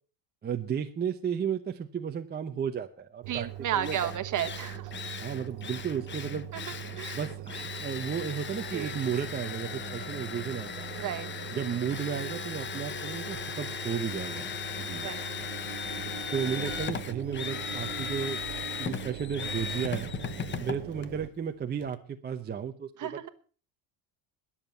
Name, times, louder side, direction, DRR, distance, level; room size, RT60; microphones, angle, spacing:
voice 1, 0.4-4.1 5.2-6.5 7.1-10.9 11.5-15.1 16.3-18.4 18.8-20.1 20.6-22.9, right 7 dB, 20° right, 4 dB, 0.7 m, -34 dB
Engine, 3.2-21.3, right 15 dB, 60° right, 0.8 m, -42 dB
voice 2, 3.3-4.9 6.5-6.6 6.9-7.2 8.7-8.9 11.0-11.3 15.0-15.3 23.0-23.3, right 10 dB, 40° right, 9 dB, 1.3 m, -33 dB
Drill, 3.4-3.5 3.8-21.9, left 7 dB, 25° left, 0.8 m, -38 dB
21.5 x 7.4 x 5.8 m, 0.40 s
cardioid pair, 145°, 48 cm